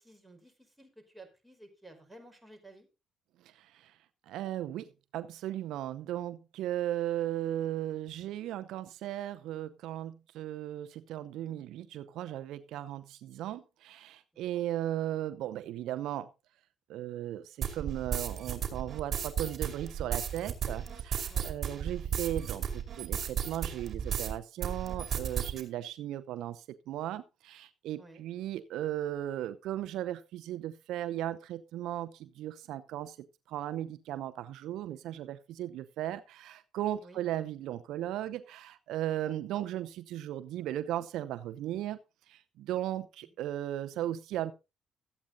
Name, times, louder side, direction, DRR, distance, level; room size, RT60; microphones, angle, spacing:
voice 1, 0.0-2.9 14.3-14.6 21.3-21.5 21.8-22.2 28.0-28.2 37.0-37.2 39.2-39.6, right 2 dB, 5° right, 4.8 m, -54 dB
voice 2, 3.5-3.9 4.3-16.3 16.9-42.0 42.3-44.5, right 12 dB, 80° right, 0.7 m, -36 dB
sound 1, 17.6-24.3 24.6-25.6, right 8 dB, 55° right, 2.5 m, -34 dB
13.5 x 8.6 x 3.9 m
supercardioid pair, 70°, 0 cm